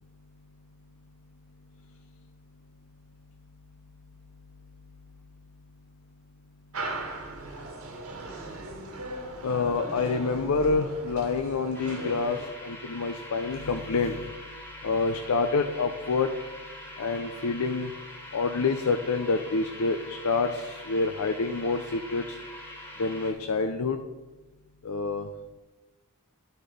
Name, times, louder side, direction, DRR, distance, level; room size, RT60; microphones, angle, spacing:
sound 1, 6.7-12.4, right 2 dB, 70° right, 1.3 m, -38 dB
voice 1, 9.4-14.3 14.8-16.3 17.0-17.9 18.3-22.2 23.0-24.0 24.8-25.3, left 4 dB, 70° left, 6 dB, 0.5 m, -27 dB
sound 2, 11.7-23.3, left 1 dB, 10° left, 1.2 m, -44 dB
11.0 x 4.3 x 5.0 m, 1.1 s
head